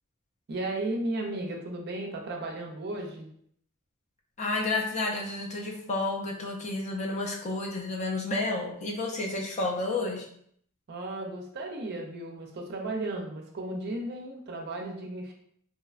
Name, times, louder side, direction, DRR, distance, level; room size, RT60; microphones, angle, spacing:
voice 1, 0.5-3.3 10.9-15.3, right 2 dB, 50° right, 2 dB, 0.4 m, -34 dB
voice 2, 4.4-10.2, left 2 dB, 35° left, 0 dB, 0.4 m, -31 dB
2.7 x 2.1 x 2.4 m, 0.67 s
head